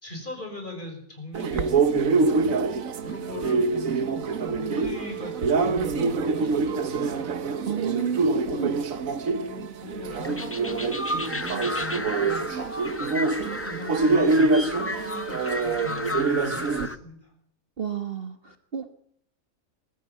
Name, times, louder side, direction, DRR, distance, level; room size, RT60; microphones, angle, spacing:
voice 1, 0.0-2.4 3.0-7.3 7.9-8.9 9.2-10.8 11.1-12.4 13.0-17.3, left 2 dB, 35° left, 3 dB, 5.9 m, -40 dB
sound 1, 1.3-16.9, right 4 dB, 65° right, 1.5 m, -25 dB
voice 2, 7.6-8.7 17.8-18.9, right 8 dB, 40° right, 8 dB, 1.4 m, -31 dB
sound 2, 10.1-17.0, left 2 dB, 15° left, 0.5 m, -33 dB
21.5 x 13.0 x 9.2 m, 0.67 s
omnidirectional pair, 1.5 m